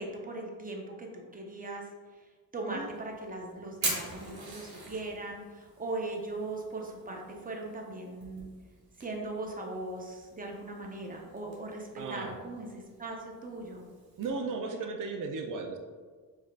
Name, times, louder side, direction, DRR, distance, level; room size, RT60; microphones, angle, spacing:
voice 1, 0.0-1.9 2.5-8.5 9.0-13.9, right 2 dB, 20° right, 0 dB, 0.8 m, -39 dB
Fire, 2.8-14.3, right 3 dB, 75° right, 1.3 m, -44 dB
voice 2, 12.0-12.4 14.2-15.8, right 4 dB, 55° right, 4 dB, 0.5 m, -35 dB
5.1 x 2.7 x 2.4 m, 1.5 s
cardioid pair, 60°, 39 cm